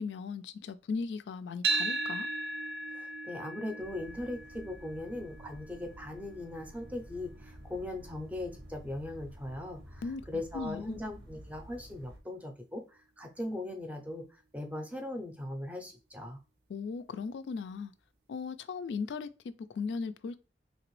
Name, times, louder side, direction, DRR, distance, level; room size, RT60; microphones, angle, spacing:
voice 1, 0.0-2.3 10.0-10.2 10.5-11.0 16.7-17.9 18.3-20.5, left 5 dB, 80° left, 0.3 m, -37 dB
sound 1, 1.6-9.8, right 3 dB, 65° right, 0.4 m, -38 dB
voice 2, 2.9-16.4, left 1 dB, 10° right, 0.5 m, -39 dB
sound 2, 3.8-12.2, equal, 90° right, 0.9 m, -51 dB
3.2 x 2.9 x 3.1 m
head